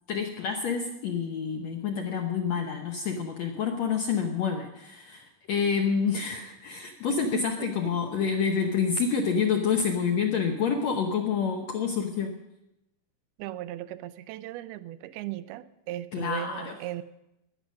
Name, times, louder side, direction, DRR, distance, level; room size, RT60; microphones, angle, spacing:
voice 1, 0.1-12.4 16.1-16.8, left 6 dB, 70° left, 3 dB, 1.6 m, -28 dB
voice 2, 7.1-8.0 13.4-17.0, right 14 dB, 90° right, 13 dB, 2.6 m, -38 dB
17.0 x 11.0 x 6.3 m, 0.89 s
omnidirectional pair, 4.3 m